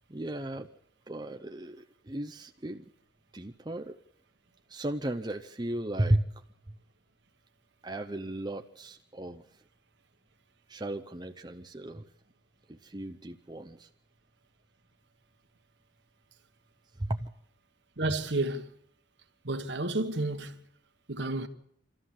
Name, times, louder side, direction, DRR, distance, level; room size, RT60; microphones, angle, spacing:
voice 1, 0.1-0.7 1.1-2.8 3.3-4.0 4.7-6.3 6.7-6.8 7.8-9.4 10.7-12.0 12.7-13.9 17.0-17.3, right 1 dB, 20° right, 0.7 m, -34 dB
voice 2, 18.0-18.7 19.4-20.6 21.1-21.5, right 2 dB, 65° right, 1.5 m, -31 dB
26.5 x 13.5 x 7.4 m
head